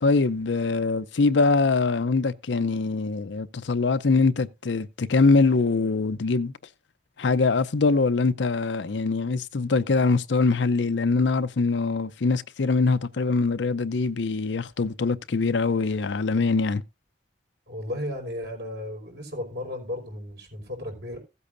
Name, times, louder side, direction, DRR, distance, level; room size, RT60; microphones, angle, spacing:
voice 1, 0.0-6.5 7.2-16.8, left 3 dB, 80° left, 0.6 m, -23 dB
voice 2, 17.7-21.2, left 1 dB, 65° right, 4.8 m, -34 dB
16.0 x 8.3 x 2.6 m
head